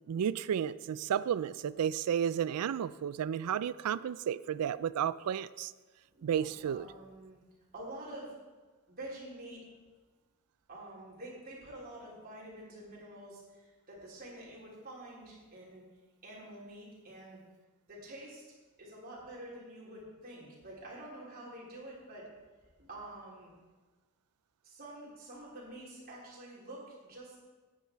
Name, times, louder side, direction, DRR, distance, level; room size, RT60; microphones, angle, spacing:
voice 1, 0.1-5.7 6.2-6.9, right 8 dB, 90° right, 17 dB, 0.3 m, -32 dB
voice 2, 6.1-7.4 7.7-8.3 8.9-9.6 10.7-15.9 16.2-17.4 17.9-18.4 18.8-22.3 22.8-23.5 24.6-27.4, right 1 dB, 40° right, -5 dB, 3.6 m, -48 dB
9.5 x 9.2 x 4.6 m, 1.3 s
head